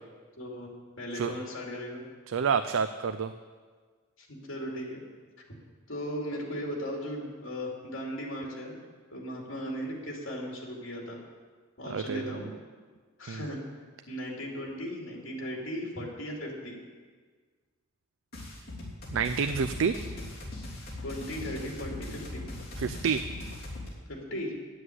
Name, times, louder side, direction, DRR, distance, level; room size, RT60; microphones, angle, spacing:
voice 1, 0.4-0.7 1.0-2.0 4.2-5.0 5.4-5.5 5.9-8.8 9.1-11.2 11.8-12.5 13.2-13.6 14.1-16.8 21.0-22.5 24.1-24.6, equal, 75° left, -1 dB, 2.6 m, -37 dB
voice 2, 2.3-3.3 11.9-12.3 13.3-13.4 19.1-20.0 22.8-23.3, right 6 dB, 75° right, 10 dB, 0.4 m, -28 dB
sound 1, 18.3-23.9, left 1 dB, 50° left, 3.3 m, -40 dB
9.8 x 7.9 x 7.9 m, 1.5 s
head